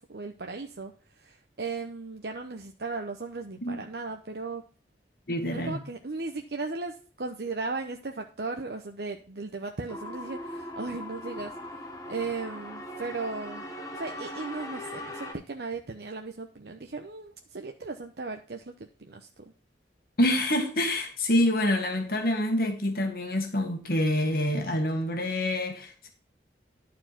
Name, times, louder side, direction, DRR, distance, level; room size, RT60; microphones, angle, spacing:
voice 1, 0.0-4.6 5.5-11.5 11.8-13.7 13.9-19.5, right 3 dB, 60° right, 0.8 m, -36 dB
voice 2, 5.3-5.8 20.2-26.1, left 1 dB, 55° left, 1.7 m, -26 dB
sound 1, 9.9-15.3, left 1 dB, 20° left, 1.7 m, -39 dB
11.0 x 4.7 x 5.9 m
head